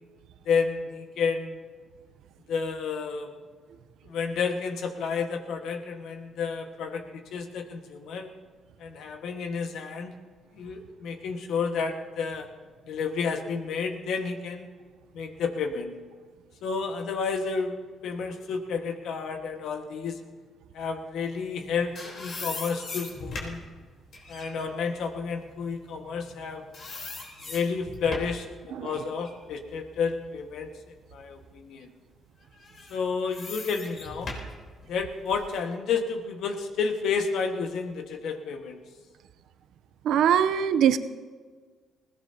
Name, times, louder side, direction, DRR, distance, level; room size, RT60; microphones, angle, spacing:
voice 1, 0.4-1.6 2.5-3.3 4.0-8.3 8.8-10.1 10.5-12.5 12.9-14.7 15.1-16.0 16.6-20.2 20.7-23.6 24.3-26.6 27.5-28.5 28.8-30.7 31.1-31.9 32.9-34.3 34.9-38.8, left 5 dB, 80° left, 5 dB, 1.6 m, -31 dB
sound 1, 21.5-26.4 26.7-28.5 28.9-30.9 31.4-31.5 32.5-35.5, left 2 dB, 60° left, 3.7 m, -40 dB
voice 2, 40.0-41.0, right 9 dB, 80° right, 12 dB, 0.7 m, -22 dB
20.5 x 17.0 x 2.9 m, 1.5 s
cardioid pair, 90°, 0 cm